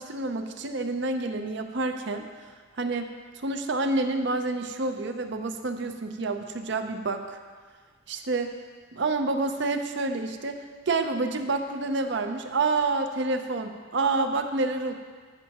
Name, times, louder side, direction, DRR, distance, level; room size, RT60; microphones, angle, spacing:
voice 1, 0.0-2.3 2.8-3.1 3.4-7.4 8.1-8.5 9.0-14.9, right 3 dB, 60° right, 7 dB, 0.6 m, -28 dB
13.0 x 6.4 x 2.9 m, 1.5 s
head